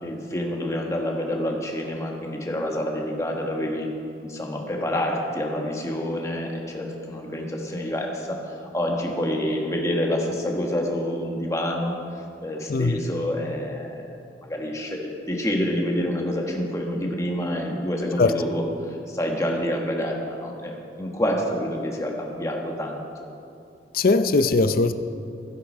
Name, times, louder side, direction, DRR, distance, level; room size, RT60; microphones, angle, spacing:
voice 1, 0.0-3.9 4.3-8.4 8.7-12.0 12.4-14.2 14.4-18.7 19.1-23.0, equal, 15° left, 0 dB, 1.4 m, -27 dB
voice 2, 23.9-24.9, left 3 dB, 55° left, 10 dB, 0.5 m, -20 dB
14.5 x 8.1 x 5.5 m, 2.5 s
head